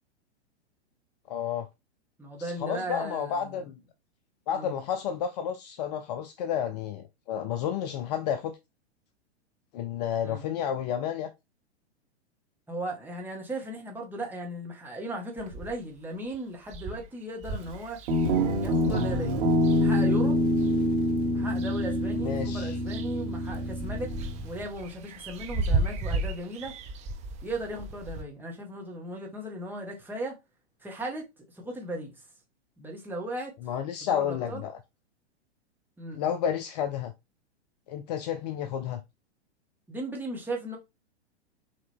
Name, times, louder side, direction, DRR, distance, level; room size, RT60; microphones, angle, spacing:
voice 1, 1.3-1.7 2.4-3.8 4.5-8.6 9.7-11.3 22.2-22.8 33.6-34.8 36.1-37.1 37.9-39.0, left 9 dB, 40° left, 0.5 m, -31 dB
voice 2, 2.2-3.6 4.5-4.7 10.2-10.5 12.7-18.0 18.6-19.4 19.8-20.4 21.3-24.1 24.4-26.7 27.4-30.4 30.8-31.2 31.5-32.1 32.8-33.5 34.0-34.6 36.0-36.2 39.9-40.8, right 1 dB, 5° right, 1.5 m, -37 dB
sound 1, 15.4-16.0 16.3-16.4 16.6-20.7 21.2-22.1 22.4-28.2, right 2 dB, 20° right, 0.6 m, -35 dB
Guitar, 18.1-24.6, left 1 dB, 50° right, 1.8 m, -26 dB
4.9 x 3.0 x 3.5 m
figure-of-eight pair, 110°, 33 cm